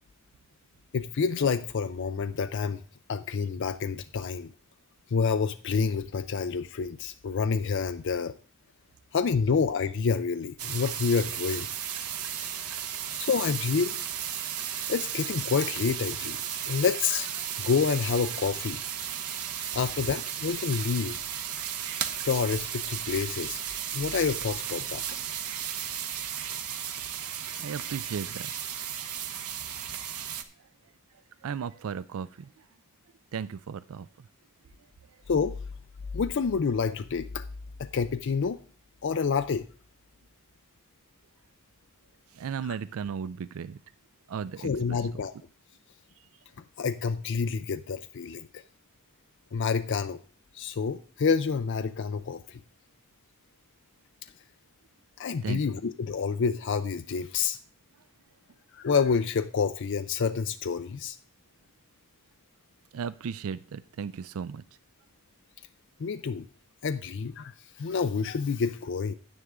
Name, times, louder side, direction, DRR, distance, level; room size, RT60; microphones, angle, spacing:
voice 1, 0.9-2.8 3.1-4.5 5.1-8.3 9.1-11.7 12.4-12.5 13.2-14.0 14.9-16.4 16.7-18.8 19.7-21.2 22.2-23.6 23.9-25.0 35.3-35.6 36.1-37.5 37.8-38.6 39.0-39.7 44.6-45.3 46.8-48.6 49.5-50.2 50.5-52.6 55.2-57.6 58.7-61.2 66.0-66.5 66.8-69.1, left 5 dB, 55° left, 10 dB, 0.4 m, -28 dB
sound 1, 10.6-30.4, right 9 dB, 90° right, 0.9 m, -34 dB
voice 2, 27.4-28.5 30.6-32.7 33.3-34.3 35.1-35.2 42.3-43.8 44.3-45.1 46.2-46.3 55.4-55.6 62.9-64.6, right 6 dB, 70° right, 16 dB, 0.4 m, -36 dB
10.5 x 9.8 x 3.6 m, 0.42 s
head